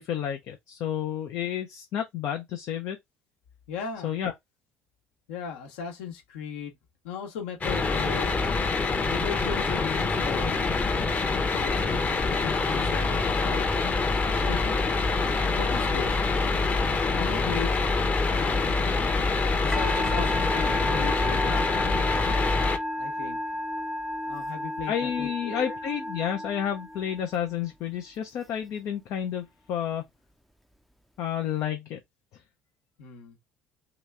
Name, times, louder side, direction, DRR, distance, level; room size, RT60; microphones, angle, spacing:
voice 1, 0.0-3.0 4.0-4.3 24.9-30.0 31.2-32.0, left 9 dB, 50° left, 0.6 m, -30 dB
voice 2, 3.7-4.1 5.3-6.8 7.0-8.4 9.1-13.7 14.3-14.8 15.5-16.1 17.2-18.9 19.6-21.6 22.9-23.4 24.2-25.8 33.0-33.4, left 7 dB, 65° left, 1.1 m, -37 dB
sound 1, 7.6-22.8, left 3 dB, 25° left, 0.9 m, -25 dB
Musical instrument, 19.7-27.3, left 1 dB, ahead, 0.6 m, -32 dB
3.1 x 3.0 x 3.4 m
figure-of-eight pair, 55°, 7 cm